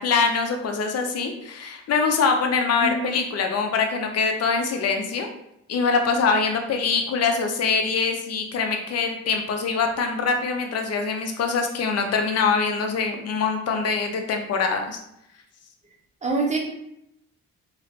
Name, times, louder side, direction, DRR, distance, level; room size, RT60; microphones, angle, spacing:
voice 1, 0.0-5.3 5.7-15.0, left 5 dB, 55° left, 4 dB, 0.7 m, -24 dB
voice 2, 2.8-3.2 16.2-16.6, right 3 dB, 25° right, 0 dB, 0.8 m, -25 dB
3.1 x 3.0 x 2.7 m, 0.80 s
cardioid pair, 90°, 30 cm